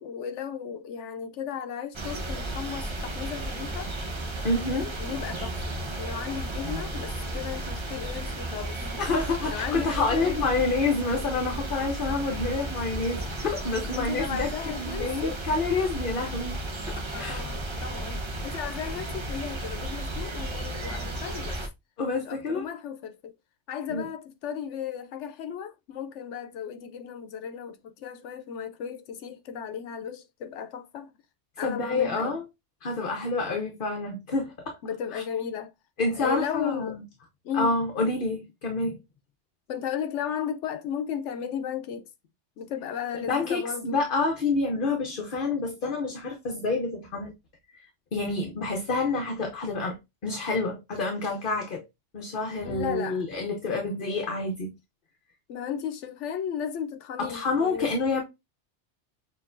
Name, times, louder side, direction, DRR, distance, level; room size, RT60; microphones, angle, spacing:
voice 1, 0.0-3.9 5.0-9.0 9.5-10.7 13.0-13.3 13.9-15.4 17.1-21.6 22.1-23.3 23.7-31.1 31.6-32.3 34.8-35.7 36.1-37.0 37.4-37.7 39.7-42.1 42.6-44.1 52.6-53.2 53.7-53.9 55.5-58.0, left 8 dB, 85° left, 1.0 m, -35 dB
sound 1, 1.9-21.7, right 1 dB, 30° right, 0.7 m, -34 dB
voice 2, 4.4-4.9 9.0-16.6 16.9-17.5 22.0-22.7 23.9-24.0 31.6-32.4 32.8-34.8 35.1-35.2 36.0-37.0 37.5-39.0 43.3-47.3 48.1-50.0 50.2-51.8 52.1-54.7 57.2-58.2, left 3 dB, 50° left, 1.0 m, -28 dB
6.5 x 3.0 x 2.5 m
omnidirectional pair, 1.2 m